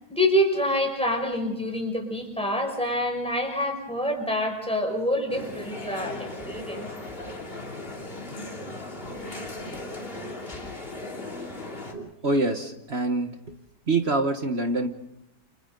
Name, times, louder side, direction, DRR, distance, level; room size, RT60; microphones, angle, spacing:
voice 1, 0.1-6.9, equal, 5° left, 1 dB, 5.8 m, -26 dB
sound 1, 5.3-11.9, left 2 dB, 35° left, 3.2 m, -37 dB
voice 2, 11.9-13.4 13.9-14.9, right 2 dB, 40° right, 6 dB, 1.5 m, -26 dB
30.0 x 28.0 x 3.9 m, 0.84 s
omnidirectional pair, 1.7 m